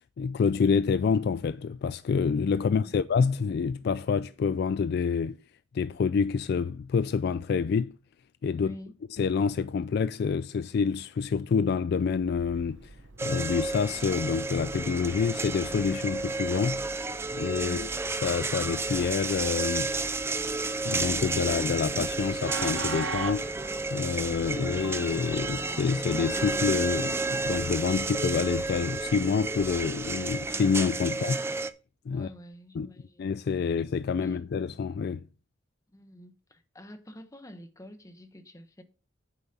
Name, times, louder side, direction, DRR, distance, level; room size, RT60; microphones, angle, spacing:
voice 1, 0.2-5.4 5.7-7.9 8.4-8.7 9.2-12.9 13.2-16.8 17.3-17.9 18.2-19.9 20.8-23.5 23.9-31.4 32.1-32.3 32.8-32.9 33.2-35.2, left 5 dB, 55° left, 0.3 m, -27 dB
voice 2, 2.6-3.1 8.6-9.0 17.6-18.0 31.1-31.2 32.1-33.7 34.2-34.4 35.9-38.8, left 1 dB, 15° left, 1.0 m, -48 dB
Train, 12.1-30.6, right 4 dB, 75° right, 0.9 m, -44 dB
sound 1, 13.2-31.7, right 3 dB, 15° right, 0.4 m, -32 dB
8.9 x 7.1 x 2.8 m
head